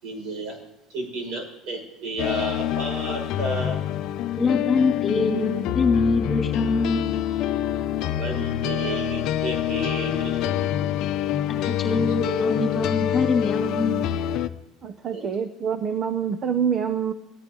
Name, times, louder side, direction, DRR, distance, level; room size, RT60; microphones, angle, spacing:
voice 1, 0.0-0.6 0.9-3.8 8.2-11.0 11.6-11.7 15.1-15.2, right 1 dB, 50° right, 2 dB, 6.0 m, -32 dB
sound 1, 2.2-14.5, left 11 dB, 55° left, 0.8 m, -26 dB
voice 2, 4.4-7.1 11.6-14.0, left 4 dB, 25° left, 1 dB, 2.8 m, -24 dB
voice 3, 14.8-17.1, right 7 dB, 30° right, 10 dB, 0.8 m, -26 dB
22.0 x 15.0 x 3.9 m, 0.97 s
cardioid pair, 155°, 0 cm